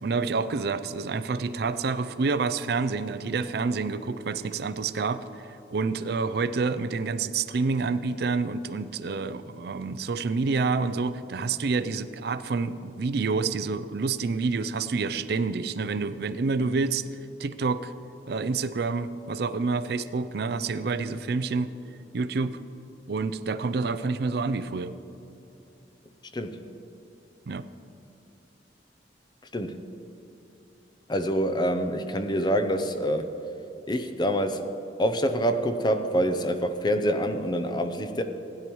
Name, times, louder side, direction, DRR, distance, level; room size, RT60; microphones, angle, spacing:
voice 1, 0.0-5.2 5.7-17.0 17.4-17.9 18.3-21.7 22.1-22.6 23.1-24.9 27.5-27.7, right 4 dB, 60° right, 13 dB, 0.4 m, -28 dB
voice 2, 31.1-33.3 33.9-34.7 35.0-38.2, equal, 25° left, 8 dB, 0.6 m, -26 dB
16.0 x 10.0 x 3.1 m, 2.9 s
head